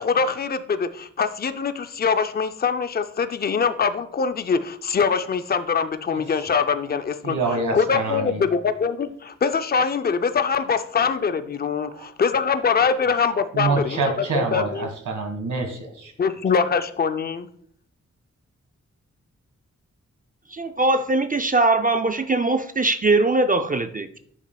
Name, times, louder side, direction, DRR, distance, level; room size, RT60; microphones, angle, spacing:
voice 1, 0.0-14.0 14.3-14.9 16.2-17.5, left 5 dB, 30° left, 10 dB, 0.4 m, -23 dB
voice 2, 7.2-8.5 11.9-12.1 13.5-16.1, right 3 dB, 80° right, 4 dB, 1.7 m, -26 dB
voice 3, 20.5-24.2, right 2 dB, 30° right, 8 dB, 0.4 m, -21 dB
11.0 x 7.3 x 2.2 m, 0.64 s
wide cardioid pair, 125°, 30 cm